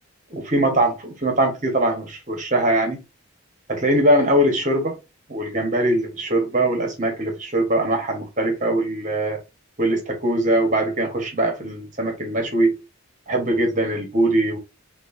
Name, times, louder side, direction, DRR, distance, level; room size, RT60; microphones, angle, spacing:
voice 1, 0.3-3.0 3.7-5.0 5.3-9.4 9.8-12.8 13.3-14.6, right 1 dB, 35° right, 1.2 m, -21 dB
6.2 x 2.5 x 2.6 m
head